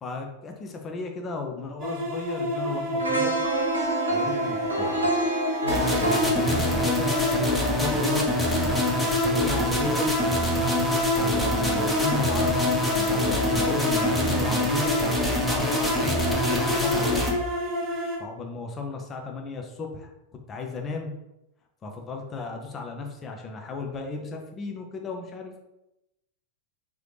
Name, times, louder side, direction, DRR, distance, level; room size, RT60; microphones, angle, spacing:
voice 1, 0.0-3.4 4.1-5.2 6.0-7.1 7.7-8.4 9.0-10.1 11.1-15.0 15.3-16.2 16.5-17.1 18.2-20.1 20.5-21.1 21.8-25.6, left 3 dB, 25° left, 3 dB, 0.6 m, -35 dB
sound 1, 1.8-18.2, left 1 dB, 25° right, 1.2 m, -29 dB
sound 2, 3.0-9.0 9.4-9.5, right 2 dB, 80° right, 0.9 m, -29 dB
voice 2, 5.6-6.5 10.6-11.0, left 1 dB, 90° left, 1 dB, 0.6 m, -35 dB
sound 3, 5.7-17.3, left 1 dB, 5° left, 0.9 m, -25 dB
3.8 x 3.2 x 3.3 m, 0.91 s
figure-of-eight pair, 90°, 0 cm